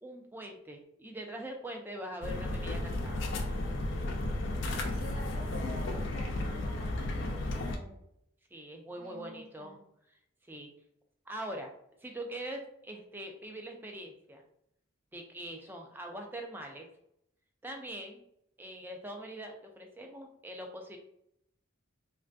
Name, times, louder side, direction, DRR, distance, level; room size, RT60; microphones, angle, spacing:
voice 1, 0.0-3.3 8.5-9.8 10.5-10.7 11.3-11.7 12.0-14.4 15.1-16.9 17.6-18.2 18.6-21.0, right 1 dB, 10° right, 2 dB, 0.3 m, -43 dB
sound 1, 2.2-7.8, left 1 dB, 60° left, 0.5 m, -33 dB
voice 2, 4.6-8.0 9.0-9.8, equal, 90° right, -2 dB, 1.0 m, -49 dB
3.2 x 2.5 x 2.2 m, 0.75 s
head